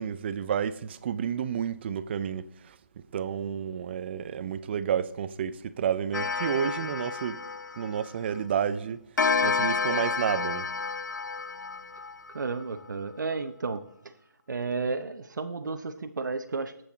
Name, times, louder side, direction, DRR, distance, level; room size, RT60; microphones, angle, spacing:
voice 1, 0.0-2.7 3.1-7.4 7.8-9.0 9.4-10.7, right 8 dB, 35° right, 0.5 m, -30 dB
Clock, 6.1-8.4 9.2-12.6, left 5 dB, 85° left, 0.6 m, -30 dB
voice 2, 12.3-13.8 14.5-16.8, right 4 dB, 80° right, 0.7 m, -32 dB
12.0 x 7.7 x 3.9 m
hypercardioid pair, 155°, 10 cm